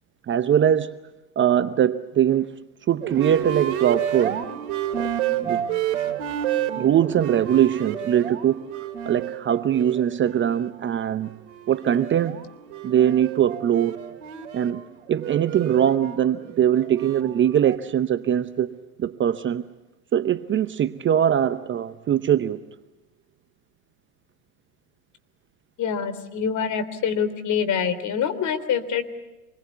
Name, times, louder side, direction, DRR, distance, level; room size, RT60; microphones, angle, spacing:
voice 1, 0.3-1.0 1.4-4.4 5.0-5.1 5.4-5.6 6.8-8.6 9.1-11.3 11.7-12.4 12.8-14.0 14.5-14.8 15.1-19.7 20.1-22.6, right 10 dB, 25° right, 0.8 m, -22 dB
sound 1, 3.0-10.7 11.1-17.8, right 10 dB, 65° right, 3.2 m, -31 dB
voice 2, 25.8-29.1, left 7 dB, 40° left, 3.2 m, -25 dB
27.0 x 21.5 x 8.2 m
hypercardioid pair, 90°, 44 cm